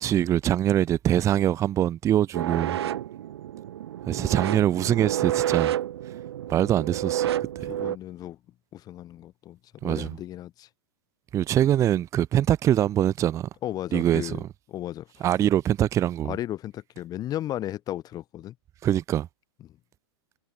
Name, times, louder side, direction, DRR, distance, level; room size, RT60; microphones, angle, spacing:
voice 1, 0.0-2.8 4.1-5.7 6.5-7.3 7.6-7.7 9.8-10.2 11.3-13.5 13.9-14.4 15.2-16.4 18.8-19.3, right 11 dB, 20° right, 0.6 m, -23 dB
sound 1, 2.3-8.0, right 11 dB, 75° right, 1.3 m, -29 dB
voice 2, 7.7-8.4 8.7-10.7 13.6-14.4 14.7-15.2 16.2-18.5 19.6-19.7, left 13 dB, 30° left, 2.0 m, -35 dB
hypercardioid pair, 130°, 14 cm